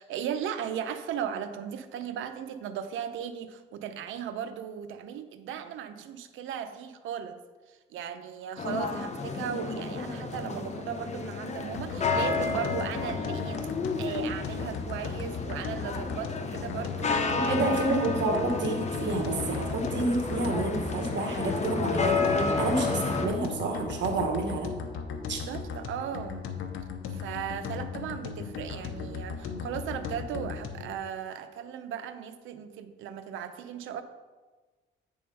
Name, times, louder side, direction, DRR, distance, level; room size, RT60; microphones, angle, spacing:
voice 1, 0.0-7.4 7.7-13.6 14.0-17.7 25.5-26.5 27.1-34.0, right 8 dB, 85° right, 9 dB, 0.6 m, -37 dB
sound 1, 8.6-23.3, left 4 dB, 35° left, 0.8 m, -31 dB
sound 2, 11.7-30.9, left 6 dB, 80° left, 0.8 m, -37 dB
voice 2, 17.3-24.7 25.3-25.4, right 2 dB, 65° right, 1 dB, 1.4 m, -29 dB
8.5 x 3.7 x 5.4 m, 1.3 s
cardioid pair, 90°, 20 cm